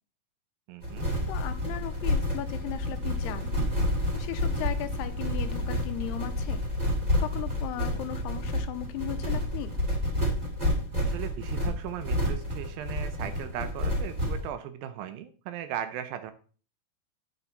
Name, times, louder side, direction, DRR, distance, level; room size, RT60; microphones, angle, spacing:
voice 1, 0.7-1.1 11.0-16.3, right 10 dB, 80° right, 10 dB, 2.1 m, -37 dB
sound 1, 0.8-14.5, left 1 dB, 15° right, 1.7 m, -29 dB
voice 2, 1.3-3.8 4.1-6.6 7.2-9.7, left 13 dB, 85° left, 9 dB, 2.6 m, -37 dB
9.8 x 7.0 x 4.0 m, 0.40 s
omnidirectional pair, 5.0 m